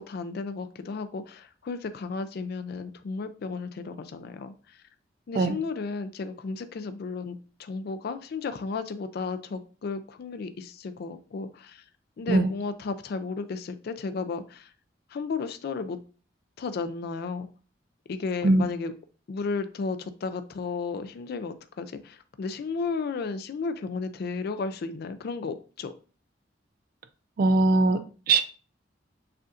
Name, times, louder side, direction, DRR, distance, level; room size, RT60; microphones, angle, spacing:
voice 1, 0.0-4.8 5.3-11.8 12.2-14.7 15.1-16.0 16.6-17.5 18.1-18.9 19.3-25.9, left 4 dB, 55° left, 0.4 m, -34 dB
voice 2, 27.4-28.4, right 2 dB, 50° right, 0.3 m, -21 dB
6.6 x 2.5 x 2.4 m
head